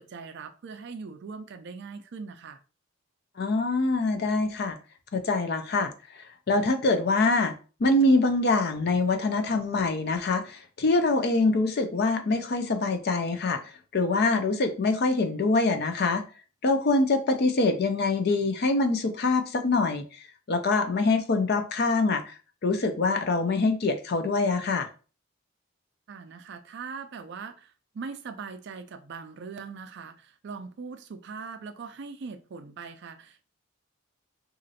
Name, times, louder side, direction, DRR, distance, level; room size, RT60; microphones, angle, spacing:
voice 1, 0.0-2.6 26.1-33.4, right 5 dB, 50° right, 0.3 m, -41 dB
voice 2, 3.4-4.8 5.1-5.9 6.5-7.5 7.8-16.2 16.6-20.0 20.5-22.3 22.6-24.9, left 3 dB, 50° left, 0.4 m, -24 dB
3.0 x 2.5 x 2.7 m
head